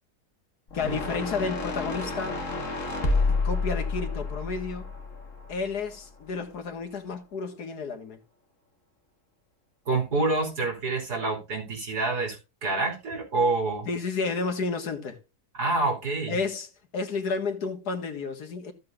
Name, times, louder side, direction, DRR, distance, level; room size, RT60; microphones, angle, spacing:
voice 1, 0.7-2.4 3.3-4.9 5.5-8.2 13.9-15.2 16.3-18.7, left 4 dB, 90° left, 2.2 m, -31 dB
sound 1, 0.7-6.0, left 3 dB, 55° left, 1.9 m, -29 dB
voice 2, 9.9-13.9 15.6-16.4, right 3 dB, 90° right, 4.2 m, -27 dB
15.0 x 7.5 x 2.5 m
omnidirectional pair, 1.6 m